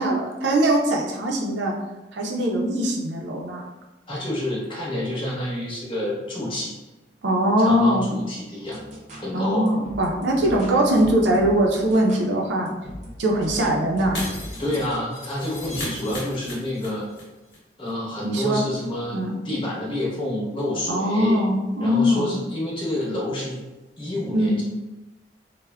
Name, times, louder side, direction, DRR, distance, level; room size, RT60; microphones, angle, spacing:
voice 1, 0.0-1.7 2.1-3.6 7.2-8.1 9.3-12.7 13.2-14.2 18.2-18.6 19.1-19.4 20.9-22.3 24.3-24.6, equal, 90° right, -1 dB, 0.5 m, -21 dB
voice 2, 4.1-6.7 7.6-8.8 9.2-9.7 14.6-17.1 17.8-19.2 19.4-21.4 21.8-23.6 24.0-24.6, left 1 dB, 30° left, -5 dB, 0.9 m, -28 dB
sound 1, 8.6-15.0, equal, 40° right, 0.6 m, -40 dB
Shatter, 14.1-17.2 17.5-17.6 17.9-18.0, left 1 dB, 75° left, 0.8 m, -35 dB
3.3 x 2.0 x 2.2 m, 1.1 s
head